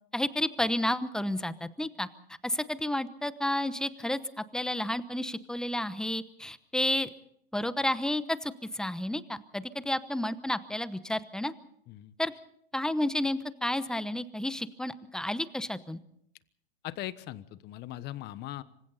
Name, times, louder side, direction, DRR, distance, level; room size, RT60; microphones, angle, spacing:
voice 1, 0.1-2.1 2.4-7.1 7.5-11.5 12.2-12.3 12.7-16.0, left 1 dB, ahead, 14 dB, 0.9 m, -31 dB
voice 2, 16.8-18.6, left 14 dB, 35° left, 15 dB, 1.2 m, -39 dB
26.5 x 25.0 x 4.1 m, 0.71 s
hypercardioid pair, 120°, 31 cm